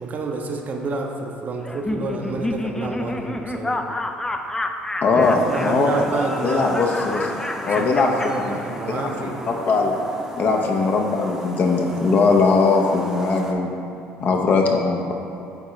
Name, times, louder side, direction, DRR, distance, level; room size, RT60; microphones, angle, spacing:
voice 1, 0.0-3.8 5.4-6.8 7.8-9.5 14.2-14.7, right 3 dB, 45° right, 2 dB, 0.7 m, -29 dB
Laughter, 1.6-9.1, left 2 dB, 15° left, 0.4 m, -29 dB
voice 2, 5.0-5.9 6.4-7.3 7.6-8.1 8.4-8.6 8.9-9.0 9.5-10.0 10.4-13.7 14.2-15.1, left 4 dB, 50° left, 2 dB, 0.8 m, -20 dB
sound 1, 5.2-13.5, right 1 dB, 10° right, 0.8 m, -36 dB
9.0 x 3.7 x 3.1 m, 2.6 s
supercardioid pair, 85°, 4 cm